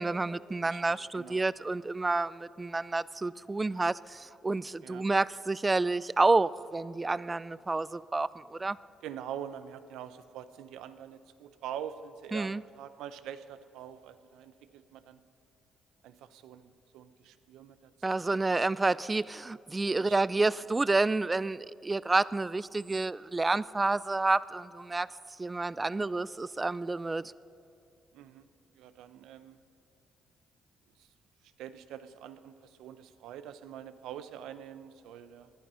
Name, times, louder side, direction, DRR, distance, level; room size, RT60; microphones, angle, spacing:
voice 1, 0.0-8.8 12.3-12.6 18.0-25.1 25.4-27.3, right 3 dB, 20° right, 20 dB, 0.3 m, -29 dB
voice 2, 0.6-1.4 4.8-5.1 9.0-15.2 16.0-18.6 20.0-20.2 28.1-28.4 28.7-29.6 31.0-31.1 31.6-35.5, right 9 dB, 85° right, 12 dB, 0.7 m, -45 dB
19.5 x 11.0 x 5.6 m, 2.6 s
cardioid pair, 100°, 0 cm